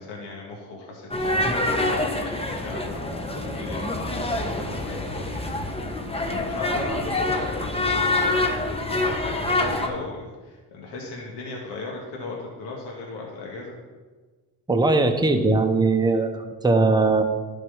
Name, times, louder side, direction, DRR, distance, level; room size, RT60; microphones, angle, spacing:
voice 1, 0.0-5.5 6.1-8.5 9.2-13.8, left 3 dB, 75° left, -2 dB, 1.9 m, -37 dB
sound 1, 1.1-9.9, left 2 dB, 15° left, 1.2 m, -26 dB
voice 2, 14.7-17.2, right 3 dB, 10° right, 5 dB, 1.0 m, -20 dB
11.0 x 4.7 x 5.6 m, 1.3 s
supercardioid pair, 70°, 41 cm